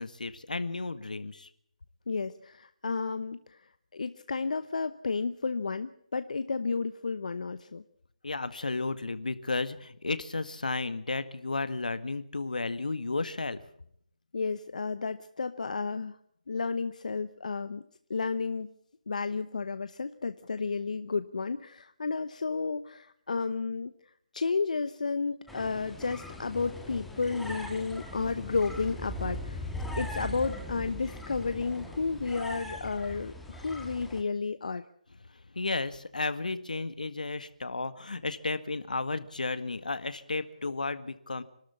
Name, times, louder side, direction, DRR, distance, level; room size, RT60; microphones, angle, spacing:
voice 1, 0.0-1.5 8.2-13.6 35.5-41.4, left 3 dB, 90° left, 13 dB, 1.8 m, -33 dB
voice 2, 2.1-3.6 3.9-7.8 14.3-16.2 16.5-17.8 18.1-18.7 19.1-23.9 24.3-29.7 30.0-34.8, left 4 dB, 65° left, 12 dB, 1.0 m, -32 dB
sound 1, 25.5-34.2, left 1 dB, ahead, 1.6 m, -40 dB
27.0 x 13.0 x 8.5 m, 0.68 s
hypercardioid pair, 165°, 4 cm